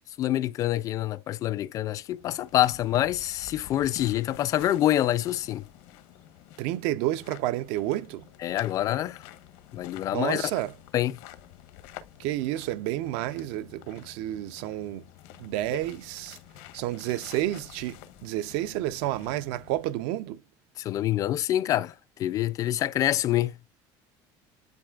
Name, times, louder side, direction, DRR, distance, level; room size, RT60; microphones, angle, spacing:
voice 1, 0.2-5.7 8.4-9.2 9.7-10.5 10.9-11.2 20.8-21.9 22.2-23.5, left 13 dB, 35° left, 0.4 m, -26 dB
sound 1, 1.9-20.2, left 12 dB, 90° left, 1.1 m, -49 dB
voice 2, 6.6-8.3 10.1-10.7 12.2-15.0 15.4-16.4 16.7-20.4, right 14 dB, 80° right, 0.5 m, -30 dB
10.5 x 3.9 x 2.4 m
cardioid pair, 175°, 10 cm